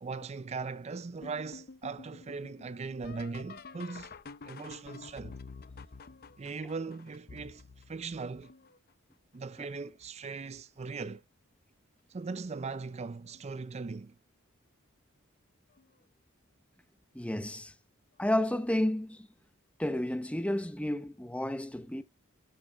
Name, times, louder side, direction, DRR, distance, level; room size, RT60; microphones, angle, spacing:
voice 1, 0.0-4.1 4.4-5.4 6.4-7.6 7.9-8.5 9.3-11.2 12.1-14.2, right 4 dB, 30° right, 0.4 m, -39 dB
sound 1, 1.2-8.9 9.6-10.1 10.5-11.2 12.5-12.6 13.3-13.6 15.8-15.9 18.2-18.3, left 4 dB, 45° left, 0.6 m, -50 dB
voice 2, 17.1-17.7 18.2-19.3 19.8-22.0, left 1 dB, 5° left, 0.8 m, -31 dB
12.5 x 6.7 x 3.4 m
head